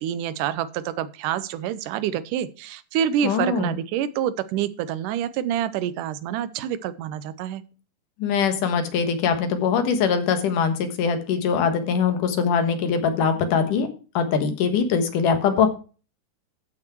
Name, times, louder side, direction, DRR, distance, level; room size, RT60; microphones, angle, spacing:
voice 1, 0.0-7.6, right 10 dB, 85° right, 15 dB, 2.3 m, -27 dB
voice 2, 3.2-3.8 8.2-13.9 14.1-15.7, left 6 dB, 85° left, 7 dB, 3.0 m, -22 dB
13.5 x 6.2 x 4.5 m, 0.35 s
omnidirectional pair, 3.6 m